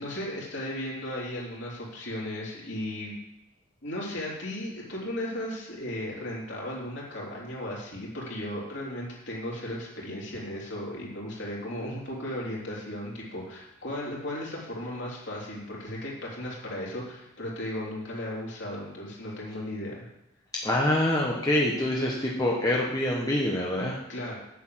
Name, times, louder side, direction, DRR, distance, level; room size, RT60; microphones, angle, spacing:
voice 1, 0.0-3.2 3.8-20.1 24.1-24.4, left 1 dB, 55° left, -4 dB, 3.4 m, -35 dB
voice 2, 20.5-24.0, left 1 dB, 15° left, -3 dB, 1.1 m, -25 dB
8.3 x 6.8 x 7.8 m, 0.86 s
head